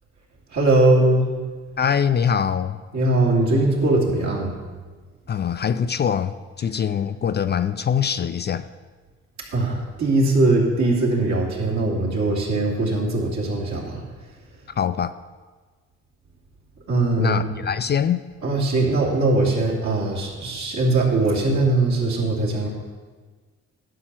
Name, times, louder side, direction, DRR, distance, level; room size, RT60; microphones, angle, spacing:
voice 1, 0.5-1.3 2.9-4.5 9.5-14.0 16.9-17.4 18.4-22.7, right 2 dB, 65° right, -3 dB, 2.9 m, -20 dB
voice 2, 1.8-2.8 5.3-8.7 14.8-15.2 17.2-18.2, left 7 dB, 35° left, 12 dB, 0.4 m, -23 dB
11.5 x 5.6 x 7.5 m, 1.4 s
cardioid pair, 90°, 30 cm